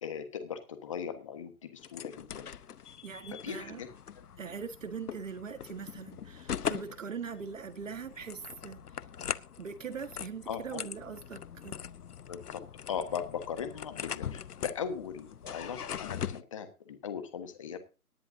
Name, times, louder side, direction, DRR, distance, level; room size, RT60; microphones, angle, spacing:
voice 1, 0.0-2.5 3.3-3.9 10.5-10.9 12.3-17.8, left 7 dB, 20° left, 1.3 m, -39 dB
sound 1, 1.8-16.4, left 8 dB, 90° left, 0.9 m, -41 dB
voice 2, 3.0-3.8 4.4-9.0 9.6-11.8, right 6 dB, 55° right, 1.6 m, -41 dB
18.5 x 10.5 x 2.7 m
hypercardioid pair, 170°, 45 cm